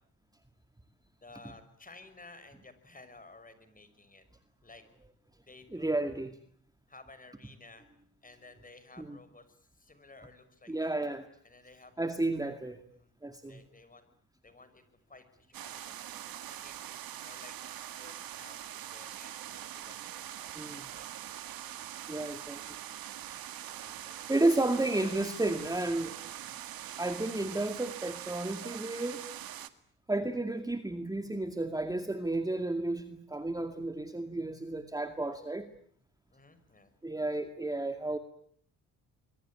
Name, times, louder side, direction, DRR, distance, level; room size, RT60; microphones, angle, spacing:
voice 1, 1.2-4.2 4.6-4.8 5.4-6.2 6.9-7.9 8.2-11.0 11.4-11.9 12.9-13.1 13.4-14.1 14.4-21.1 23.7-24.4 24.7-25.6 36.3-36.9, left 3 dB, 25° left, 11 dB, 6.2 m, -55 dB
voice 2, 5.7-6.3 9.0-9.2 10.7-11.2 12.0-12.8 13.2-13.6 20.6-20.8 22.1-22.8 24.3-26.1 27.0-29.2 30.1-35.7 37.0-38.2, right 2 dB, 10° right, 8 dB, 2.2 m, -32 dB
sound 1, 15.5-29.7, right 11 dB, 75° right, 2.0 m, -43 dB
26.0 x 23.0 x 8.7 m, 0.62 s
cardioid pair, 90°, 36 cm